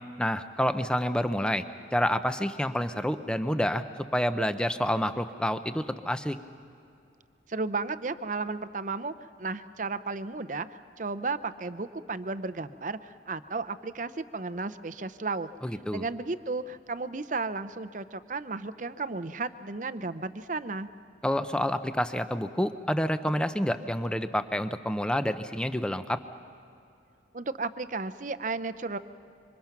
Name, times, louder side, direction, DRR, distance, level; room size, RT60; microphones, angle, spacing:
voice 1, 0.2-1.6 1.9-3.8 4.1-6.4 15.6-16.1 21.2-26.2, equal, 5° left, 10 dB, 0.6 m, -28 dB
voice 2, 7.5-9.1 9.4-15.5 15.9-20.9 27.3-29.0, right 3 dB, 40° right, 13 dB, 0.6 m, -34 dB
26.5 x 24.5 x 5.9 m, 2.4 s
head